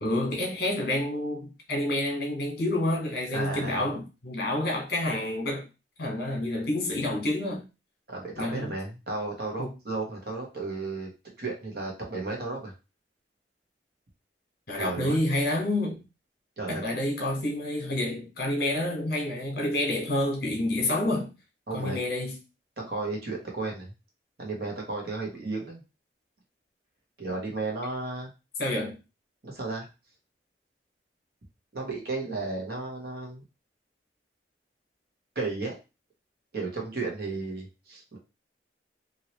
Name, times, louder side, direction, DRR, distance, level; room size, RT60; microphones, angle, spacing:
voice 1, 0.0-5.7 6.0-7.6 8.4-8.7 9.6-9.7 14.7-16.0 16.7-21.3 21.7-22.4 28.6-29.0, left 1 dB, 60° left, 1.3 m, -28 dB
voice 2, 3.3-3.9 8.1-11.1 11.4-12.7 14.7-15.2 16.6-16.8 21.7-22.0 22.8-23.9 24.4-25.8 27.2-28.3 29.4-29.9 31.7-33.4 35.3-35.7 36.5-38.2, right 3 dB, 60° right, 1.2 m, -33 dB
2.9 x 2.8 x 3.0 m
head